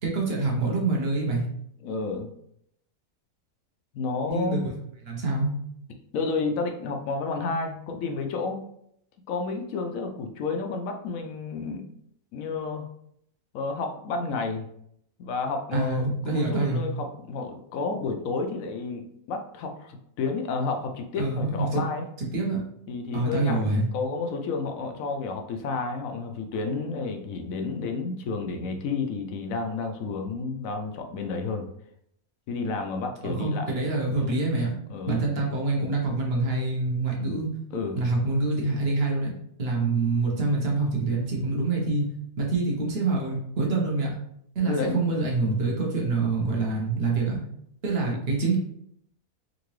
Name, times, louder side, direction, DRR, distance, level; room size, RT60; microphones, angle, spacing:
voice 1, 0.0-1.4 4.3-4.7 5.1-5.5 15.7-16.8 21.2-21.8 22.2-22.6 23.1-23.9 33.2-34.7 35.1-37.5 38.0-39.3 39.6-42.1 42.4-44.1 44.5-47.4 47.8-48.6, right 3 dB, 45° right, -2 dB, 1.1 m, -26 dB
voice 2, 1.8-2.3 3.9-4.6 6.1-8.6 9.3-11.8 12.3-12.9 13.5-14.7 15.2-22.0 22.9-23.6 23.9-31.7 32.5-33.7 34.1-34.3 34.9-35.2 37.7-38.1 44.7-45.0, left 4 dB, 70° left, 4 dB, 0.9 m, -31 dB
3.8 x 2.6 x 3.1 m, 0.72 s
omnidirectional pair, 1.6 m